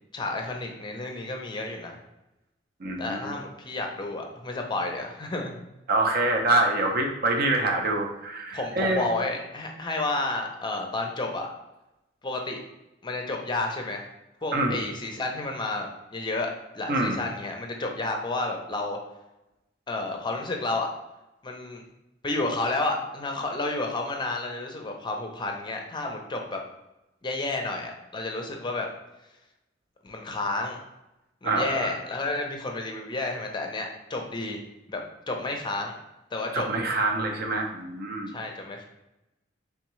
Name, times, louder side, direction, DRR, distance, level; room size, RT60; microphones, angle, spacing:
voice 1, 0.1-2.0 3.0-5.5 8.5-11.5 12.2-12.6 13.0-14.0 14.4-19.0 19.9-20.9 21.4-21.9 22.2-26.6 27.2-28.9 30.0-30.8 31.4-34.6 34.9-35.0 35.3-35.9 36.3-36.7 38.3-38.8, left 2 dB, 25° left, 2 dB, 0.5 m, -31 dB
voice 2, 2.8-3.3 5.9-9.1 14.5-14.8 16.9-17.2 31.4-32.0 36.5-38.3, right 2 dB, 55° right, 3 dB, 0.6 m, -25 dB
3.5 x 3.5 x 3.0 m, 0.95 s
head